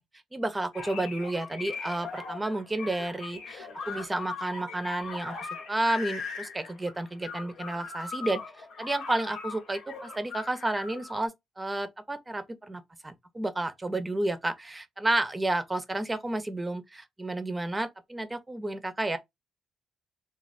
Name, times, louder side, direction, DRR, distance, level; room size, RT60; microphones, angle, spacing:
voice 1, 0.3-11.3 11.6-19.2, right 2 dB, 15° right, 0.5 m, -31 dB
sound 1, 0.7-11.3, left 4 dB, 90° left, 0.9 m, -40 dB
3.1 x 2.3 x 2.5 m
cardioid pair, 90°, 0 cm